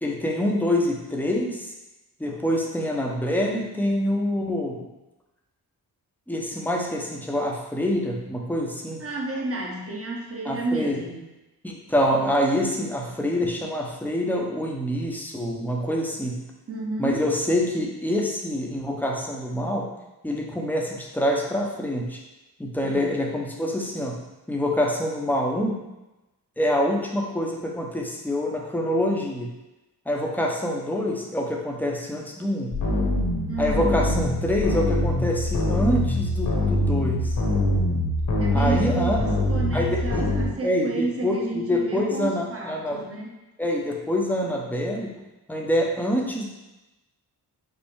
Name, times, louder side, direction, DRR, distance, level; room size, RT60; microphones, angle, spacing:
voice 1, 0.0-1.7 2.2-4.9 6.3-9.0 10.4-11.0 11.6-16.4 17.0-19.9 20.2-22.2 22.6-24.2 24.5-25.8 26.6-29.5 30.1-32.8 33.6-37.4 38.5-39.2 39.7-40.3 40.6-43.0 43.6-45.1 45.5-46.5, left 1 dB, 5° left, -1 dB, 0.8 m, -26 dB
voice 2, 9.0-11.3 16.7-17.2 22.8-23.1 33.5-34.0 38.4-43.3, right 3 dB, 35° right, -1 dB, 1.0 m, -31 dB
sound 1, 32.7-40.5, left 1 dB, 50° left, 1.3 m, -24 dB
5.4 x 2.1 x 4.7 m, 1.0 s
cardioid pair, 80°, 40 cm